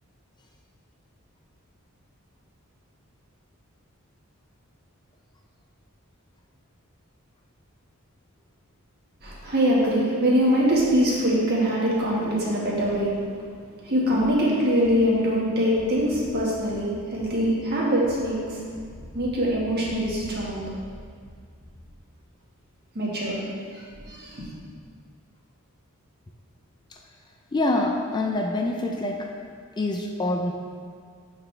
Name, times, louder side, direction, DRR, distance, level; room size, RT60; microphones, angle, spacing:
voice 1, 9.2-13.1 13.8-18.6 19.1-20.6 22.9-23.4 23.7-24.5, equal, 45° right, -5 dB, 1.6 m, -23 dB
voice 2, 27.5-29.3 29.8-30.5, left 2 dB, 20° left, 1 dB, 0.4 m, -25 dB
11.5 x 4.1 x 3.3 m, 2.1 s
head